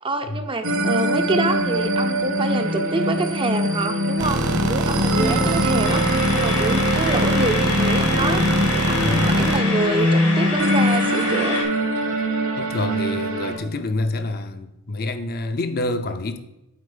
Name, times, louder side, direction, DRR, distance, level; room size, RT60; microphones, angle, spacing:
voice 1, 0.0-8.5 8.7-11.6, right 2 dB, 25° right, 0.5 m, -26 dB
sound 1, 0.6-13.6, equal, 60° right, 1.3 m, -22 dB
sound 2, 4.2-9.6, right 2 dB, 80° right, 0.7 m, -24 dB
sound 3, 5.8-11.6, left 3 dB, 85° left, 1.9 m, -28 dB
voice 2, 9.0-9.3 12.6-16.4, left 2 dB, 45° left, 0.6 m, -27 dB
8.1 x 4.6 x 5.0 m
head